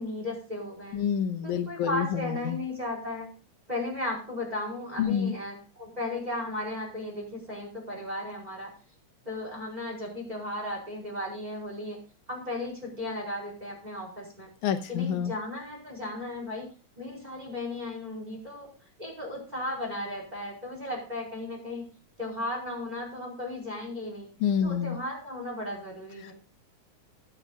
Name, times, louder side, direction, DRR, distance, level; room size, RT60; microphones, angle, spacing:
voice 1, 0.0-1.0 1.4-3.4 3.7-8.7 9.2-12.0 12.3-14.5 14.9-16.7 17.0-18.7 19.0-21.9 22.2-24.3 24.6-26.3, left 1 dB, 10° right, -1 dB, 4.8 m, -35 dB
voice 2, 0.9-2.6 5.0-5.3 14.6-15.3 24.4-25.0 26.2-26.3, left 8 dB, 80° left, 6 dB, 2.3 m, -28 dB
21.5 x 8.1 x 2.4 m, 0.35 s
omnidirectional pair, 3.5 m